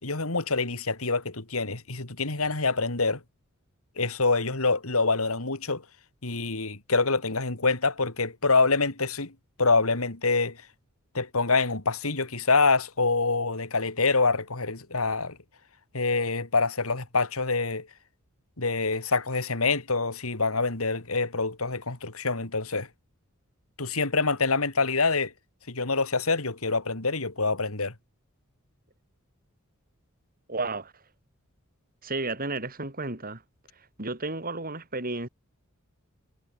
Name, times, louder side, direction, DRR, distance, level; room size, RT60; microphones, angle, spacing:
voice 1, 0.0-3.2 4.0-5.8 6.2-9.3 9.6-10.6 11.1-15.4 15.9-17.9 18.6-22.9 23.8-25.3 25.7-27.9, left 3 dB, 85° left, 2.9 m, -26 dB
voice 2, 30.5-31.0 32.0-33.4 33.8-35.3, right 2 dB, 40° right, 6.5 m, -33 dB
head